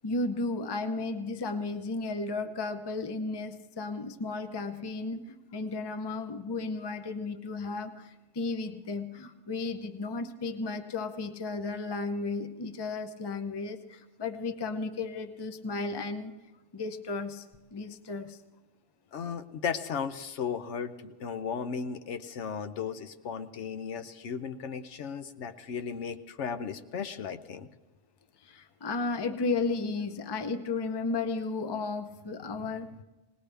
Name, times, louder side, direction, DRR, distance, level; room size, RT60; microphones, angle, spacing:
voice 1, 0.0-16.3 16.7-17.4 17.7-18.4 28.4-32.9, left 3 dB, 25° left, 8 dB, 0.6 m, -34 dB
voice 2, 19.1-27.7, left 6 dB, 75° left, 9 dB, 1.0 m, -35 dB
19.5 x 19.0 x 3.4 m, 1.1 s
omnidirectional pair, 1.2 m